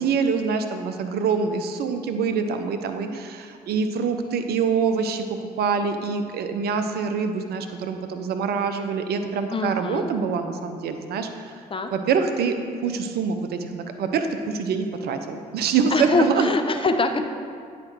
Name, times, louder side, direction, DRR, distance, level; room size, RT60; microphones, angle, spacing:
voice 1, 0.0-5.2 5.6-11.5 11.9-12.5 12.8-16.5, right 5 dB, 60° right, 7 dB, 0.6 m, -25 dB
voice 2, 9.5-10.1 11.7-11.9 15.9-17.3, left 3 dB, 30° left, 7 dB, 0.7 m, -24 dB
9.5 x 5.0 x 4.6 m, 2.2 s
figure-of-eight pair, 40°, 19 cm